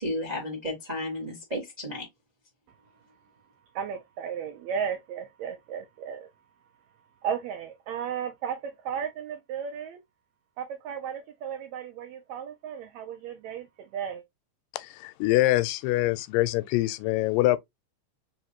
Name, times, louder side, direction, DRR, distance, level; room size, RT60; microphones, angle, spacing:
voice 1, 0.0-2.1, left 1 dB, 55° right, 0.4 m, -33 dB
voice 2, 3.7-6.3 7.2-10.0 10.6-14.2, right 7 dB, 90° right, 1.5 m, -34 dB
voice 3, 14.7-17.6, left 16 dB, 85° left, 2.2 m, -24 dB
4.8 x 3.1 x 2.8 m
omnidirectional pair, 3.9 m